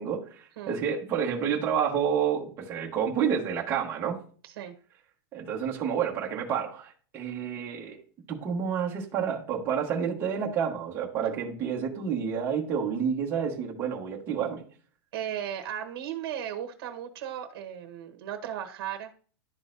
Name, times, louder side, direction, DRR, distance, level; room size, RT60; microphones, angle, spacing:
voice 1, 0.0-4.2 5.3-8.0 8.3-14.6, right 7 dB, 20° right, -2 dB, 1.1 m, -29 dB
voice 2, 4.4-4.7 15.1-19.1, right 10 dB, 65° right, 4 dB, 1.0 m, -36 dB
11.5 x 3.9 x 2.6 m, 0.41 s
supercardioid pair, 175°, 13 cm